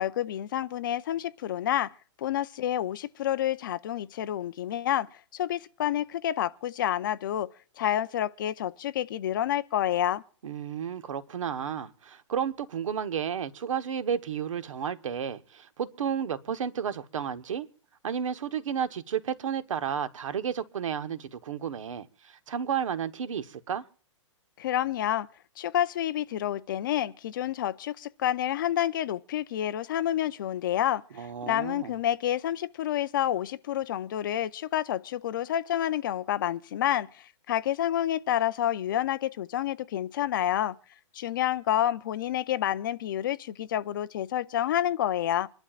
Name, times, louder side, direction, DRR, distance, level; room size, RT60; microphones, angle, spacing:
voice 1, 0.0-1.9 2.2-7.5 7.8-10.2 24.6-25.3 25.6-40.8 41.1-45.5, left 11 dB, 40° left, 0.6 m, -29 dB
voice 2, 10.4-17.7 18.0-23.8 31.1-31.9, right 8 dB, 75° right, 1.2 m, -32 dB
26.0 x 11.5 x 2.5 m
hypercardioid pair, 170°, 16 cm